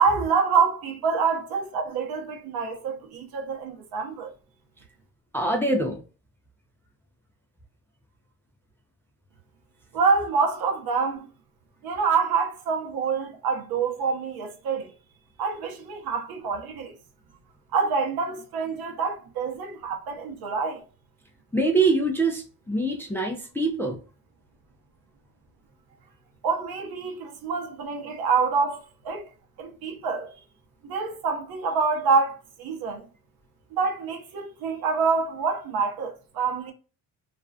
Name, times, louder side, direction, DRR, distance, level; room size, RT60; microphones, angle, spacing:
voice 1, 0.0-4.3 9.9-11.3 11.8-14.9 15.4-16.9 17.7-20.8 26.4-29.2 29.6-30.3 30.8-33.0 33.7-36.7, right 5 dB, 60° right, 0.9 m, -26 dB
voice 2, 5.3-6.0 21.5-24.0, right 2 dB, 5° left, 0.4 m, -24 dB
2.4 x 2.2 x 2.3 m
supercardioid pair, 85°, 42 cm